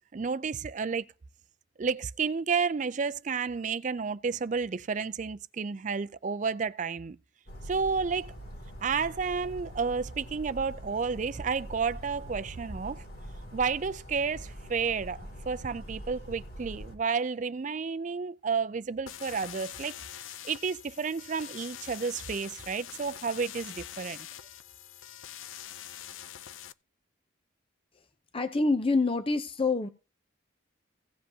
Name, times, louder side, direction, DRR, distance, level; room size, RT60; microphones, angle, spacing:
voice 1, 0.1-1.1 1.8-7.2 7.7-8.3 8.8-13.0 13.5-24.3, right 5 dB, 40° right, 0.4 m, -31 dB
Bird vocalization bird call bird song, 7.5-17.0, equal, 50° left, 2.4 m, -44 dB
sound 1, 19.1-26.7, left 11 dB, 75° left, 0.4 m, -44 dB
voice 2, 28.3-29.9, left 3 dB, 30° left, 0.6 m, -26 dB
16.5 x 7.6 x 2.8 m
head